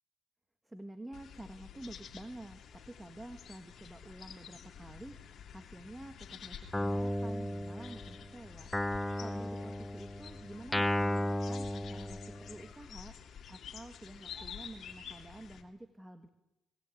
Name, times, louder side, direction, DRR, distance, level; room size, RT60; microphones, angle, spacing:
voice 1, 0.6-5.2 5.5-8.7 9.2-13.1 13.5-16.3, right 1 dB, 10° right, 9 dB, 1.5 m, -49 dB
sound 1, 1.1-15.6, left 7 dB, 55° left, 2.8 m, -50 dB
Guitar, 6.7-8.2 8.7-12.6, left 1 dB, 10° left, 0.7 m, -34 dB
20.0 x 19.5 x 8.5 m, 0.95 s
cardioid pair, 105°, 0 cm